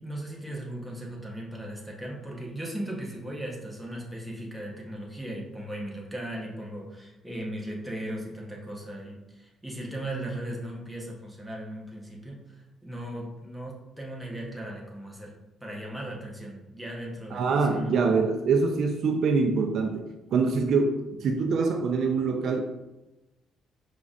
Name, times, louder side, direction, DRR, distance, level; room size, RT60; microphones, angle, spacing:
voice 1, 0.0-15.3 15.6-17.9, right 1 dB, ahead, -3 dB, 0.9 m, -37 dB
voice 2, 17.3-20.0 20.3-22.6, right 4 dB, 55° right, 3 dB, 0.4 m, -24 dB
5.1 x 3.8 x 2.4 m, 1.0 s
cardioid pair, 150°, 0 cm